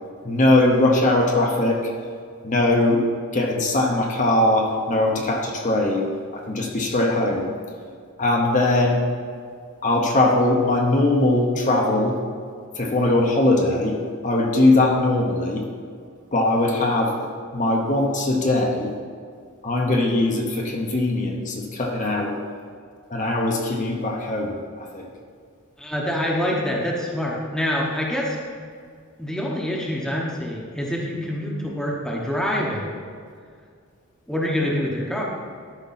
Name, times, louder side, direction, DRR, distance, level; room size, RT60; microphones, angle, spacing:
voice 1, 0.2-1.8 2.4-6.1 6.3-7.5 8.2-9.0 9.8-12.2 12.8-14.0 14.2-15.6 16.3-17.3 17.5-18.9 19.6-22.4 23.1-25.0, left 2 dB, 35° left, 0 dB, 0.9 m, -20 dB
voice 2, 25.8-28.4 29.2-32.9 34.3-35.2, equal, ahead, -3 dB, 1.0 m, -26 dB
12.0 x 5.3 x 4.1 m, 2.1 s
head